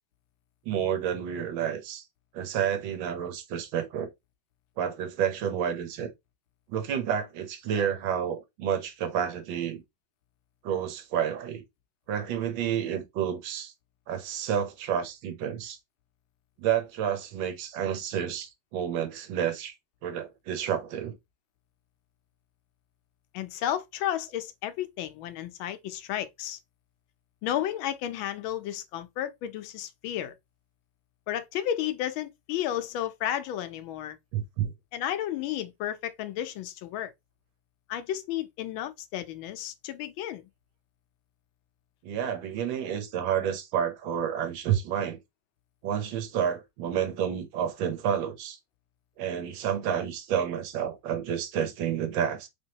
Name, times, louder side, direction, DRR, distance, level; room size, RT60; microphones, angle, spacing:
voice 1, 0.6-2.1 2.3-4.1 4.8-6.1 6.7-9.8 10.6-11.6 12.1-13.7 14.1-15.8 16.6-19.7 20.0-21.1 34.3-34.7 42.0-45.2 45.8-48.6 49.2-52.5, right 9 dB, 80° right, 1.6 m, -30 dB
voice 2, 23.3-26.6 27.4-30.3 31.3-34.2 34.9-37.1 37.9-40.4, left 11 dB, 90° left, 1.4 m, -32 dB
3.6 x 3.4 x 2.8 m
omnidirectional pair, 2.1 m